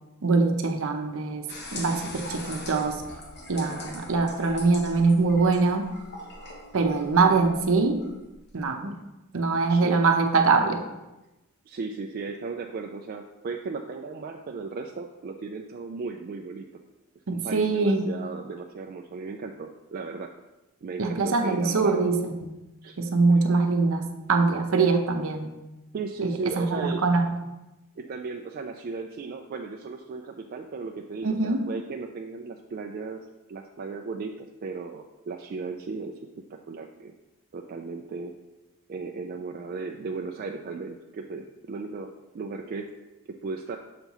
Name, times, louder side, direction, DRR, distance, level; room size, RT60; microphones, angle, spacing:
voice 1, 0.2-3.0 3.5-5.9 6.7-8.0 8.5-9.0 9.3-10.8 17.3-18.1 21.0-22.6 23.0-25.5 26.2-27.3 31.2-31.7, right 4 dB, 65° right, 4 dB, 0.7 m, -23 dB
sound 1, 1.5-8.7, left 2 dB, 50° left, 0.9 m, -42 dB
voice 2, 9.7-10.1 11.7-16.6 17.3-20.3 20.8-22.1 22.8-23.0 24.7-24.8 25.9-27.0 28.0-33.2 33.5-36.1 36.5-37.1 37.5-38.3 38.9-42.9 43.3-43.8, right 4 dB, 40° right, 3 dB, 0.3 m, -36 dB
6.6 x 5.4 x 3.0 m, 1.0 s
head